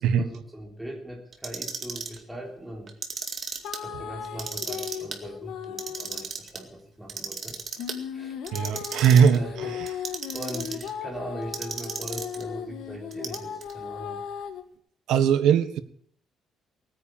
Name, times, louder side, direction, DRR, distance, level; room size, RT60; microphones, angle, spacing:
voice 1, 0.0-2.9 3.7-7.6 8.1-8.4 9.3-14.2, equal, 5° right, -1 dB, 3.5 m, -40 dB
Clock, 1.3-2.2 2.9-3.8 4.2-5.2 5.6-6.6 7.1-8.0 8.5-9.4 9.9-10.9 11.5-12.4 13.1-13.7, right 5 dB, 35° right, 2.2 m, -34 dB
sound 1, 3.6-6.3 7.8-14.6, left 8 dB, 75° left, 1.6 m, -37 dB
voice 2, 8.5-9.4 15.1-15.8, right 7 dB, 85° right, 10 dB, 1.4 m, -19 dB
19.5 x 9.6 x 7.4 m, 0.62 s
cardioid pair, 155°, 0 cm